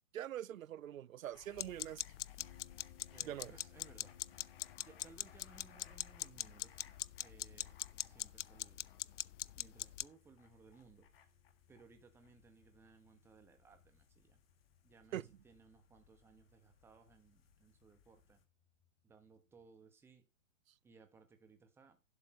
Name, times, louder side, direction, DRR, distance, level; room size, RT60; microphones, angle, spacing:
voice 1, 0.1-2.0 3.2-3.5 15.1-15.2, right 11 dB, 85° right, 0.5 m, -43 dB
sound 1, 1.3-18.4, left 8 dB, 45° left, 1.8 m, -66 dB
sound 2, 1.6-10.0, left 12 dB, 65° left, 0.5 m, -43 dB
Harp, 2.4-19.8, left 8 dB, 15° left, 3.2 m, -69 dB
voice 2, 3.1-4.1 4.8-6.8 7.2-8.9 9.5-11.1 11.7-14.4 14.8-18.4 19.0-20.2 20.8-22.0, right 4 dB, 5° right, 1.1 m, -63 dB
11.5 x 6.5 x 4.3 m
hypercardioid pair, 145°, 39 cm